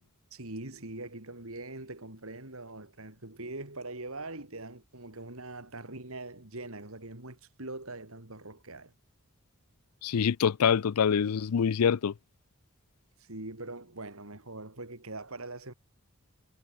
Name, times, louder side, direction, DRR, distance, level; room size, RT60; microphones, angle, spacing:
voice 1, 0.3-8.9 13.2-15.7, right 2 dB, 70° right, 3.8 m, -42 dB
voice 2, 10.0-12.1, left 7 dB, 85° left, 0.5 m, -25 dB
head